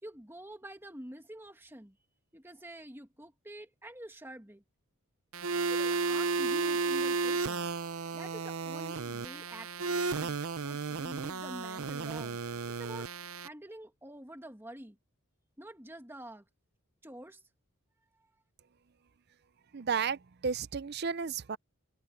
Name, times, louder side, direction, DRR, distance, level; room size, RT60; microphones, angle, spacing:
voice 1, 0.0-2.0 2.3-4.6 5.7-7.7 8.1-10.4 10.6-12.4 12.7-13.1 13.4-15.0 15.6-16.4 17.0-17.4, right 1 dB, 10° right, 2.1 m, -47 dB
sound 1, 5.3-13.5, right 4 dB, 75° right, 0.8 m, -33 dB
voice 2, 19.7-21.6, right 6 dB, 45° right, 0.5 m, -33 dB
head